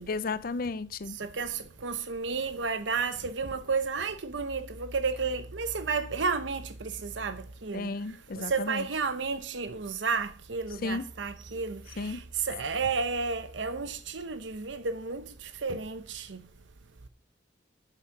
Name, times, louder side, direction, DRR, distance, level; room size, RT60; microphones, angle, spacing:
voice 1, 0.1-1.2 7.7-8.8 10.8-11.0 12.0-12.2, left 3 dB, 50° left, 0.5 m, -33 dB
voice 2, 1.2-7.9 8.5-11.8 12.5-15.2 15.6-16.4, right 4 dB, 85° right, 0.8 m, -32 dB
8.8 x 7.2 x 6.0 m
head